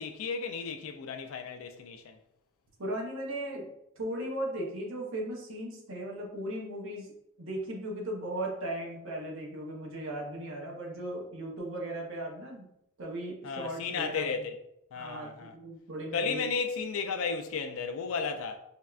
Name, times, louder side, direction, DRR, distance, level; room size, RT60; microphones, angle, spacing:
voice 1, 0.0-2.2 13.4-14.5 14.9-15.5 16.1-18.6, left 5 dB, 80° left, 0.3 m, -34 dB
voice 2, 2.8-3.7 4.0-7.1 7.4-12.7 13.0-14.3 14.9-16.4, right 1 dB, 75° right, 0.7 m, -37 dB
3.4 x 2.1 x 2.4 m
head